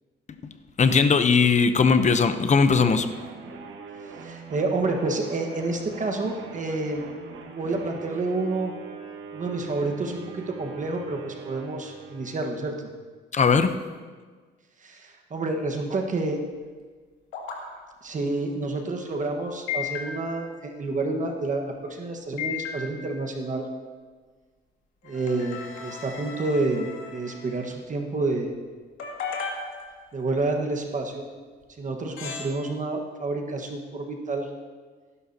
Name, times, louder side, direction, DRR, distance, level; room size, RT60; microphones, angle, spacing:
voice 1, 0.8-3.1 13.3-13.8, left 5 dB, 35° left, 10 dB, 0.8 m, -19 dB
sound 1, 2.7-12.9, right 5 dB, 80° right, 1.5 m, -42 dB
voice 2, 4.2-8.7 9.3-12.9 14.8-16.4 18.0-23.7 25.0-28.5 30.1-31.2 31.8-34.5, right 2 dB, 40° right, 2 dB, 1.5 m, -29 dB
sound 2, 17.3-17.6 19.7-20.5 22.4-23.2 25.0-27.7 29.0-30.3 31.6-31.7 32.2-32.5, left 6 dB, 90° left, 2.4 m, -35 dB
18.5 x 11.0 x 2.9 m, 1.5 s
cardioid pair, 90°, 20 cm